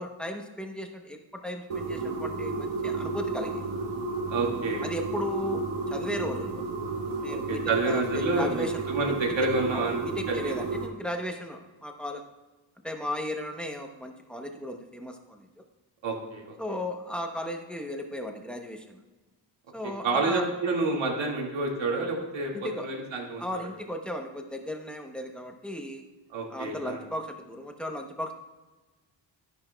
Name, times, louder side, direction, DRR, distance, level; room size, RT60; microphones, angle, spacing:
voice 1, 0.0-3.6 4.8-6.6 7.2-7.6 7.9-9.2 9.7-12.2 12.8-15.4 16.6-19.0 19.7-20.4 22.5-22.9 23.4-26.0 26.5-28.4, left 1 dB, ahead, 3 dB, 0.7 m, -36 dB
sound 1, 1.7-10.9, right 3 dB, 85° right, 1.7 m, -32 dB
voice 2, 4.3-4.9 7.3-10.0 10.3-10.5 16.0-16.6 19.8-23.7 26.3-27.0, right 3 dB, 70° right, -1 dB, 2.0 m, -29 dB
11.5 x 10.5 x 2.2 m, 1.1 s
wide cardioid pair, 165°, 48 cm